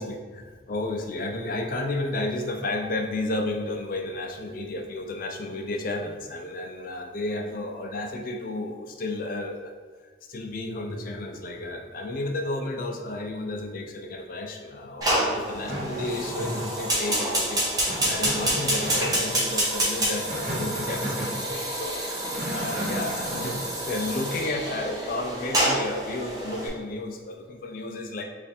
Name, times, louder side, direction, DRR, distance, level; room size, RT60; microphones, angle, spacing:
voice 1, 0.0-9.7 10.3-17.6 18.1-21.9 22.5-28.2, left 2 dB, 50° left, 3 dB, 0.4 m, -32 dB
Fire, 15.0-26.7, right 1 dB, 20° right, 0.7 m, -28 dB
sound 1, 15.7-16.8 17.8-19.4 20.1-21.4 22.1-23.6, equal, 45° right, 0.9 m, -34 dB
3.4 x 2.5 x 4.2 m, 1.5 s
head